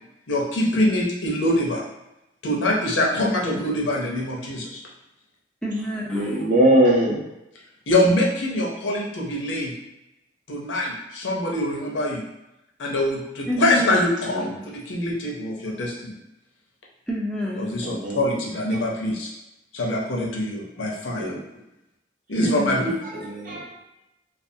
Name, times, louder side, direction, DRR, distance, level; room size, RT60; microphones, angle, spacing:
voice 1, 0.3-1.8 2.4-4.8 7.9-9.7 10.5-12.2 12.8-16.1 17.6-19.3 19.7-21.3 22.3-22.9, left 1 dB, 70° left, -2 dB, 0.6 m, -24 dB
voice 2, 5.6-6.4 13.5-14.1 17.1-17.8 22.4-22.9, equal, 5° left, -5 dB, 0.4 m, -27 dB
voice 3, 6.1-7.2 14.3-14.5 17.8-18.3 21.2-21.4 23.1-23.7, right 1 dB, 45° right, -3 dB, 0.5 m, -21 dB
2.4 x 2.3 x 2.6 m, 0.90 s
head